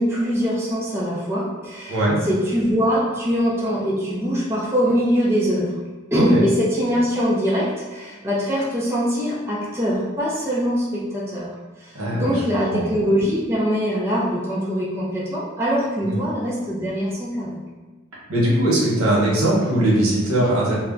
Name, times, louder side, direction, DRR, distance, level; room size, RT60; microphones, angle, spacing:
voice 1, 0.0-5.8 6.1-11.5 11.8-17.6, equal, 10° right, -7 dB, 0.4 m, -23 dB
voice 2, 1.9-2.2 6.1-6.4 11.9-12.3 12.7-12.8 16.0-16.2 18.3-20.7, right 1 dB, 90° right, -5 dB, 1.0 m, -20 dB
2.3 x 2.1 x 3.7 m, 1.3 s
head